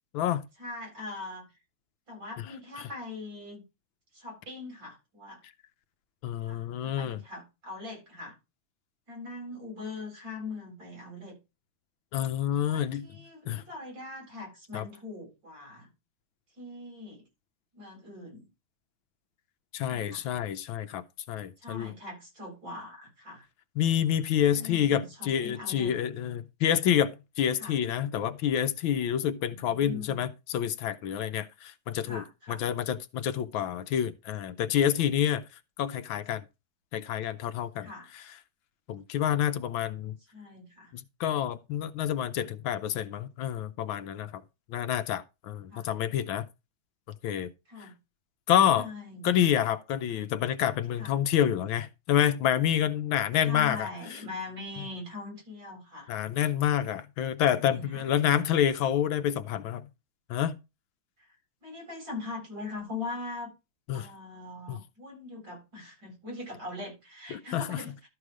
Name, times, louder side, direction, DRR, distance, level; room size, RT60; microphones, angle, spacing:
voice 1, 0.6-1.4 2.1-3.6 4.1-5.4 6.5-8.4 9.1-11.4 12.6-15.9 16.6-17.2 17.7-18.5 19.9-20.3 21.6-23.5 24.5-26.0 27.6-27.8 29.5-30.2 32.0-32.6 37.7-38.1 40.3-40.9 45.7-45.9 47.7-48.0 48.8-49.5 51.0-51.2 53.3-56.1 57.5-58.1 61.2-61.3 61.6-63.5 63.9-68.1, left 3 dB, 60° right, 8.4 m, -41 dB
voice 2, 6.2-7.2 12.1-13.1 13.5-13.6 14.7-14.8 19.7-21.9 23.8-32.2 32.5-35.4 35.8-36.4 36.9-37.9 38.9-40.1 40.9-44.4 44.7-46.4 47.2-47.5 48.5-48.9 49.2-53.9 56.1-59.9 60.3-60.6 63.9-64.1 64.7-64.8 67.3-67.8, left 10 dB, 80° left, 1.5 m, -28 dB
13.0 x 4.9 x 5.0 m
omnidirectional pair, 2.2 m